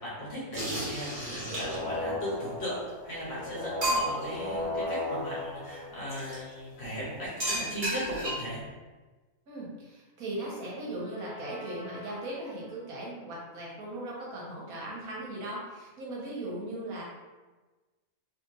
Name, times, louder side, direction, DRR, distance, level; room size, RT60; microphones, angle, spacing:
voice 1, 0.0-2.8 3.0-8.6, equal, 50° left, -7 dB, 1.2 m, -37 dB
sound 1, 0.5-2.0 2.9-3.0 3.4-3.5 3.8-4.4 6.1-6.4 7.4-8.6, equal, 35° right, 1.2 m, -32 dB
sound 2, 1.4-6.7 11.0-12.7, left 2 dB, 85° left, 1.3 m, -37 dB
voice 2, 9.5-17.0, right 1 dB, 85° right, -5 dB, 1.4 m, -38 dB
3.1 x 2.9 x 2.5 m, 1.2 s
omnidirectional pair, 1.5 m